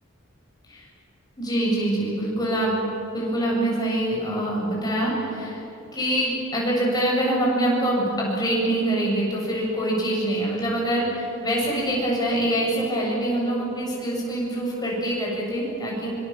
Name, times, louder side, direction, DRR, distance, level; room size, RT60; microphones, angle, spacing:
voice 1, 1.4-2.8 3.1-5.6 5.9-16.1, right 1 dB, 20° left, -4 dB, 8.0 m, -24 dB
26.5 x 25.0 x 7.5 m, 2.9 s
head